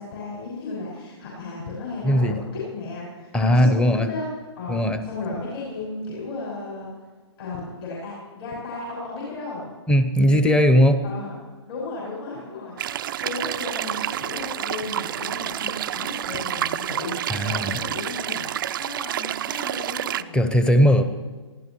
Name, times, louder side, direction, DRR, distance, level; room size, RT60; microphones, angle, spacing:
voice 1, 0.0-4.3 4.6-6.9 7.4-9.7 11.0-11.3 11.7-18.5 18.8-20.4 20.8-21.1, left 3 dB, 55° left, -6 dB, 6.0 m, -35 dB
voice 2, 2.0-2.4 3.3-4.1 4.7-5.0 9.9-11.0 17.3-17.8 20.3-21.0, equal, 5° left, 9 dB, 0.8 m, -18 dB
sound 1, 12.8-20.2, right 11 dB, 45° right, 0.4 m, -29 dB
24.0 x 15.0 x 3.1 m, 1.4 s
figure-of-eight pair, 130°, 16 cm